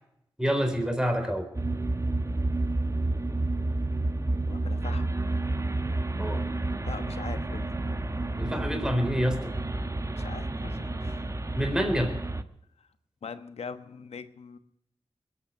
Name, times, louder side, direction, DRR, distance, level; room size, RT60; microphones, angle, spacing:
voice 1, 0.4-1.5 6.2-6.4 8.4-9.5 11.5-12.1, equal, 5° right, 4 dB, 3.9 m, -27 dB
sound 1, 1.5-12.4, right 2 dB, 30° right, 1.1 m, -30 dB
voice 2, 4.5-5.0 6.9-7.7 10.1-11.3 13.2-14.6, left 5 dB, 90° left, 10 dB, 1.1 m, -41 dB
21.0 x 8.9 x 6.4 m, 0.80 s
cardioid pair, 55°, 10 cm